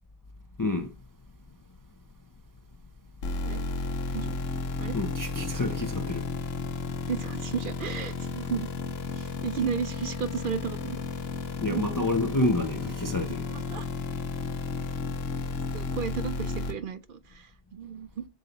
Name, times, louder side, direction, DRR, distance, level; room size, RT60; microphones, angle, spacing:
voice 1, 0.6-0.9 4.9-6.3 11.6-13.5, left 2 dB, 30° left, 0.4 m, -28 dB
sound 1, 3.2-16.7, left 4 dB, 70° left, 1.1 m, -33 dB
voice 2, 7.1-8.7 9.1-11.0 11.7-11.8 13.5-13.9 15.7-18.3, right 7 dB, 60° right, 0.7 m, -34 dB
6.2 x 3.9 x 3.9 m
omnidirectional pair, 1.1 m